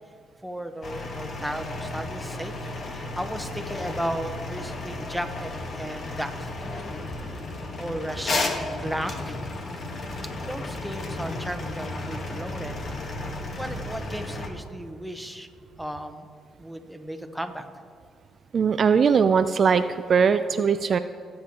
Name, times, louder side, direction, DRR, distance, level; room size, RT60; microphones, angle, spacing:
voice 1, 0.4-6.9 7.8-9.4 10.5-12.8 13.6-15.5 15.8-16.3 16.6-17.7, right 1 dB, ahead, 5 dB, 1.0 m, -35 dB
sound 1, 0.8-14.5, left 2 dB, 50° left, 1.4 m, -33 dB
voice 2, 18.5-21.0, right 6 dB, 50° right, 10 dB, 0.3 m, -20 dB
19.5 x 7.6 x 2.9 m, 2.3 s
cardioid pair, 90°, 0 cm